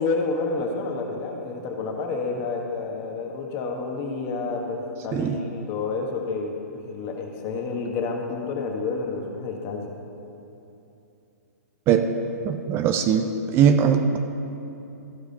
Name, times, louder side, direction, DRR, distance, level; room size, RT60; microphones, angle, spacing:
voice 1, 0.0-9.9, left 4 dB, 35° left, 2 dB, 1.4 m, -29 dB
voice 2, 12.4-14.2, right 7 dB, 25° right, 7 dB, 0.5 m, -20 dB
14.5 x 4.9 x 5.4 m, 2.8 s
hypercardioid pair, 120°, 9 cm